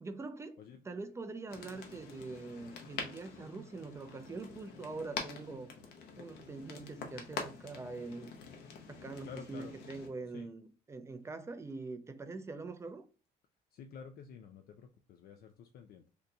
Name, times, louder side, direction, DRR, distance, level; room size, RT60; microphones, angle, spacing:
voice 1, 0.0-5.7 6.2-8.3 8.9-13.1, right 3 dB, 15° right, 0.4 m, -44 dB
sound 1, 1.5-10.1, left 5 dB, 90° left, 0.8 m, -46 dB
voice 2, 9.2-9.7 10.3-10.5 13.7-16.1, left 6 dB, 60° left, 0.4 m, -50 dB
2.8 x 2.2 x 3.8 m
cardioid pair, 110°, 17 cm